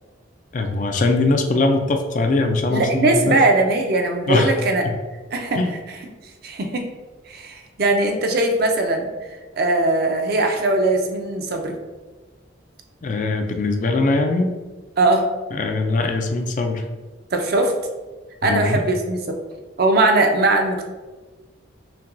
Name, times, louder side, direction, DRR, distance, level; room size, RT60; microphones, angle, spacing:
voice 1, 0.5-3.4 4.3-4.5 4.8-4.9 5.6-5.7 13.0-14.5 15.5-16.8 18.4-18.9, left 2 dB, 40° left, 5 dB, 0.3 m, -21 dB
voice 2, 2.7-4.8 5.3-5.6 6.4-6.8 7.3-9.1 9.6-11.8 15.0-15.3 17.3-17.7 18.4-19.4 19.8-20.8, right 2 dB, 50° right, 3 dB, 0.5 m, -20 dB
5.6 x 2.2 x 2.5 m, 1.3 s
head